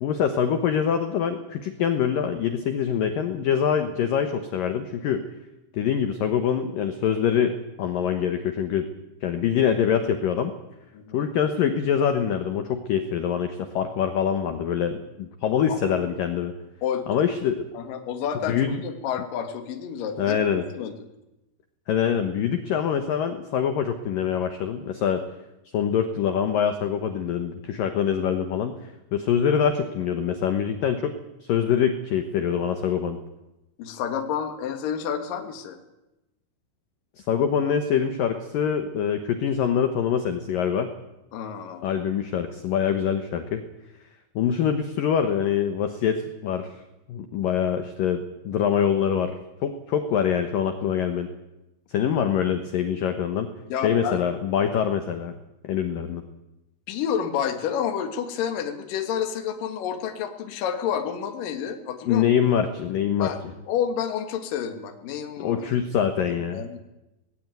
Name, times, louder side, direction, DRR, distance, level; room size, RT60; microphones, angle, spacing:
voice 1, 0.0-5.2 5.7-8.9 9.2-10.5 11.1-16.5 17.1-17.6 18.5-18.8 20.2-20.6 21.9-25.2 25.7-31.1 31.4-33.2 37.2-40.9 41.8-43.6 44.4-46.7 47.1-49.3 49.6-51.3 51.9-53.5 53.8-55.3 55.6-56.2 62.1-63.3 65.4-66.6, left 8 dB, 75° left, 7 dB, 2.0 m, -24 dB
voice 2, 10.9-11.2 15.7-15.8 16.8-17.3 17.7-20.9 33.8-35.8 41.3-41.8 53.7-54.2 56.9-62.5 63.2-63.4 63.7-65.6 66.5-66.8, left 8 dB, 55° left, 6 dB, 2.8 m, -29 dB
19.0 x 17.5 x 9.2 m, 0.97 s
omnidirectional pair, 5.6 m